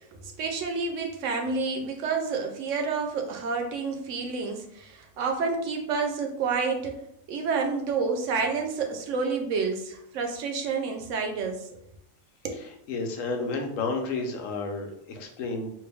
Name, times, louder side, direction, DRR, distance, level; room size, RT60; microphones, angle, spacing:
voice 1, 0.1-7.0 7.3-11.8 12.4-12.7, right 4 dB, 75° right, 3 dB, 0.9 m, -29 dB
voice 2, 12.5-15.7, left 3 dB, 85° left, 3 dB, 1.1 m, -31 dB
3.1 x 2.6 x 3.4 m, 0.76 s
omnidirectional pair, 1.3 m